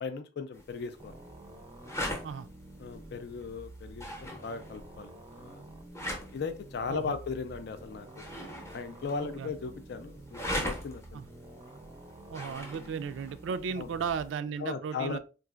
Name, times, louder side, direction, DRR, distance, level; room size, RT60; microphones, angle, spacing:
voice 1, 0.0-1.1 2.8-5.8 6.3-8.2 8.7-11.2 12.8-12.9 13.8-13.9 14.6-15.2, left 5 dB, 60° left, 0.3 m, -37 dB
sound 1, 0.5-14.3, equal, 15° left, 0.7 m, -42 dB
sound 2, 1.0-14.3, right 1 dB, 25° right, 0.4 m, -50 dB
voice 2, 12.3-15.2, right 6 dB, 90° right, 0.3 m, -35 dB
3.8 x 2.4 x 2.3 m
head